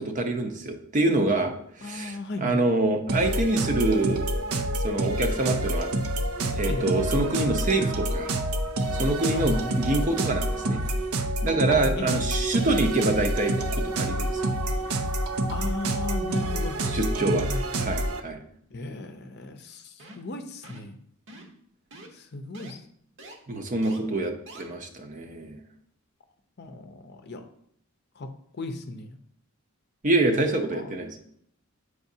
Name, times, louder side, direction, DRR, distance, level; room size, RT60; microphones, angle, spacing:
voice 1, 0.0-4.3 4.8-5.9 6.5-8.3 8.9-10.8 11.4-14.6 16.9-17.5 17.8-18.4 23.5-25.6 30.0-31.2, right 2 dB, 35° right, 5 dB, 0.6 m, -26 dB
voice 2, 1.8-2.6 6.7-6.9 9.3-9.7 11.7-12.3 15.5-16.8 17.2-17.6 18.7-21.0 22.1-22.8 24.1-24.4 26.6-27.4 28.2-29.2 30.7-31.0, left 2 dB, 50° left, 7 dB, 0.6 m, -36 dB
sound 1, 3.1-18.2, right 1 dB, 80° right, 0.6 m, -28 dB
sound 2, 20.0-20.3 20.6-20.9 21.3-21.6 21.9-22.1 22.5-22.7 23.2-23.3 23.8-24.0 24.5-24.6, right 1 dB, 55° right, 0.9 m, -45 dB
8.2 x 4.8 x 2.7 m, 0.68 s
head